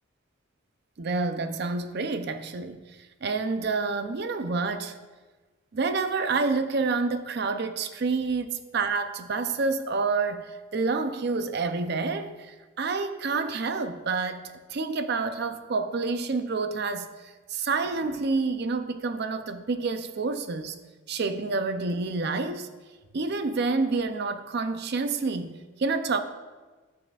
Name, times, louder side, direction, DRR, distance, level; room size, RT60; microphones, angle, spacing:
voice 1, 1.0-2.8 3.2-4.9 5.7-10.4 10.7-17.1 17.5-20.8 21.1-22.7 23.1-26.2, right 4 dB, 50° right, 9 dB, 0.5 m, -28 dB
12.5 x 6.0 x 2.3 m, 1.3 s
head